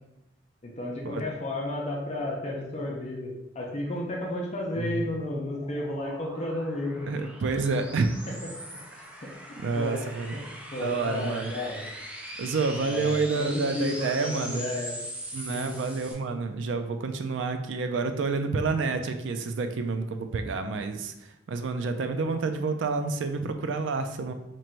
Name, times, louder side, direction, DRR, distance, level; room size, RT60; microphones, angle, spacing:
voice 1, 0.6-7.1 8.9-9.1 9.5-10.4 10.7-11.8 12.8-14.9 15.5-15.7, left 1 dB, 35° left, -2 dB, 0.6 m, -32 dB
sound 1, 4.8-16.1, equal, 5° right, 0.6 m, -41 dB
voice 2, 7.1-8.2 9.6-10.4 10.8-11.5 12.4-14.7 15.3-24.3, right 4 dB, 70° right, 7 dB, 0.4 m, -29 dB
3.0 x 2.5 x 4.4 m, 0.88 s
head